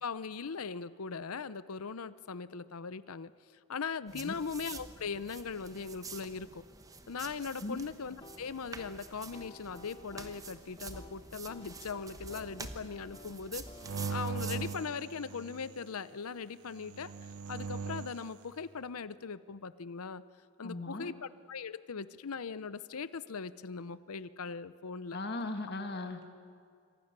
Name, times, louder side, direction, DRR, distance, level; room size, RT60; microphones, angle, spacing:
voice 1, 0.0-3.3 3.7-6.6 7.1-13.7 14.1-17.1 17.5-20.2 20.6-25.2, left 5 dB, 80° left, 16 dB, 0.7 m, -40 dB
sound 1, 4.1-14.7, right 4 dB, 15° right, 1.0 m, -48 dB
sound 2, 8.2-16.8, left 1 dB, 20° left, 1.5 m, -55 dB
sound 3, 13.8-15.8 16.8-18.3, right 5 dB, 80° right, 0.7 m, -39 dB
voice 2, 20.6-21.1 25.1-26.3, left 2 dB, 45° left, 6 dB, 1.7 m, -38 dB
27.0 x 24.5 x 6.8 m, 2.3 s
head